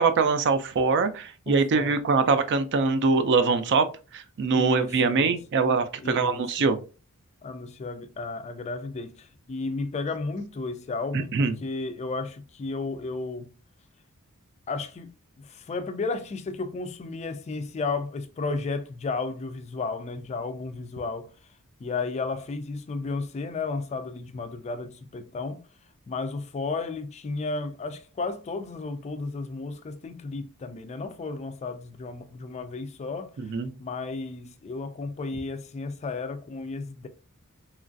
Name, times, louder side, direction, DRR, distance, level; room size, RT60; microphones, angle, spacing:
voice 1, 0.0-3.8 4.1-6.8 11.1-11.5 33.4-33.7, right 4 dB, 55° right, 0.4 m, -23 dB
voice 2, 1.5-2.0 4.5-5.4 6.0-6.7 7.4-13.5 14.7-21.3 21.8-25.6 26.1-33.5 33.8-37.1, left 3 dB, 30° left, 0.3 m, -33 dB
3.0 x 2.4 x 2.5 m
head